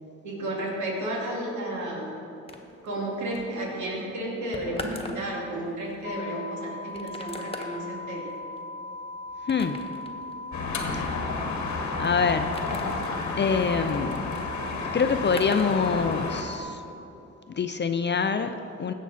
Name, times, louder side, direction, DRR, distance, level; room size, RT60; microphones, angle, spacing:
voice 1, 0.2-2.1 2.8-8.3, right 1 dB, 75° right, -4 dB, 2.6 m, -32 dB
sound 1, 2.5-15.8 16.0-16.7, left 1 dB, 20° left, 1.3 m, -43 dB
sound 2, 6.0-16.6, left 2 dB, 55° left, 0.9 m, -39 dB
voice 2, 9.5-9.8 10.9-11.1 12.0-12.7 13.4-14.2 14.9-16.8 17.5-18.9, left 5 dB, 35° left, 8 dB, 0.5 m, -25 dB
sound 3, 10.5-16.4, left 4 dB, 75° left, 1.3 m, -31 dB
16.0 x 6.1 x 4.2 m, 3.0 s
cardioid pair, 65°, 30 cm